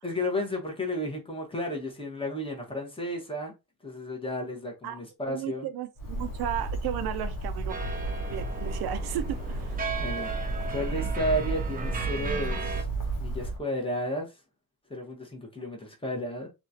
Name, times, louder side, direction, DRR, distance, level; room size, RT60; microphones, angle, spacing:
voice 1, 0.0-3.5 3.8-5.7 10.0-10.3 10.7-12.9 13.2-14.3 14.9-16.5, equal, 15° left, 1.1 m, -32 dB
voice 2, 5.3-7.8 8.2-9.8, right 11 dB, 85° right, 0.5 m, -34 dB
Bird, 6.0-13.6, right 2 dB, 60° left, 1.0 m, -33 dB
sound 1, 7.7-12.8, right 4 dB, 25° right, 0.7 m, -37 dB
2.9 x 2.4 x 2.7 m
cardioid pair, 95°, 37 cm